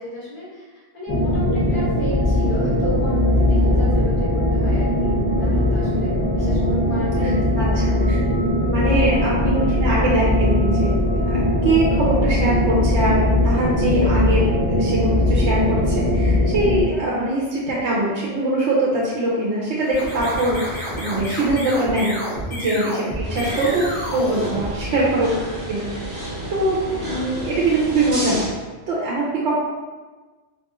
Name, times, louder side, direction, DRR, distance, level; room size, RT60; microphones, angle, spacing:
voice 1, 0.0-7.9 22.6-22.9 23.4-23.7 25.8-25.9 26.9-27.1, left 2 dB, 50° left, -9 dB, 1.4 m, -34 dB
sound 1, 1.1-16.8, left 1 dB, 30° left, 0.5 m, -19 dB
voice 2, 7.2-8.2 8.7-22.2 22.5-22.9 23.2-23.8 24.1-25.4 25.7-26.2 26.5-28.5 28.9-29.6, right 2 dB, 85° right, -5 dB, 0.9 m, -22 dB
sound 2, 19.8-25.3, equal, 70° left, 1.7 m, -30 dB
sound 3, 23.2-28.5, right 1 dB, 20° right, 1.1 m, -31 dB
3.9 x 2.3 x 2.9 m, 1.3 s
omnidirectional pair, 1.1 m